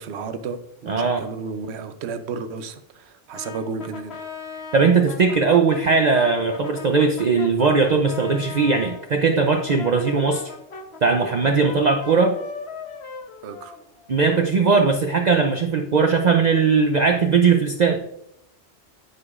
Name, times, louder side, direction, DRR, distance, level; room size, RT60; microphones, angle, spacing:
voice 1, 0.0-4.2 13.4-13.8, right 4 dB, 70° right, 9 dB, 0.9 m, -33 dB
voice 2, 0.9-1.2 4.7-10.5 11.0-12.3 14.1-18.0, right 4 dB, 45° right, 4 dB, 0.6 m, -19 dB
Brass instrument, 3.3-9.0 9.5-14.3, left 4 dB, 65° left, 1.1 m, -38 dB
14.5 x 4.9 x 2.4 m, 0.76 s
omnidirectional pair, 1.2 m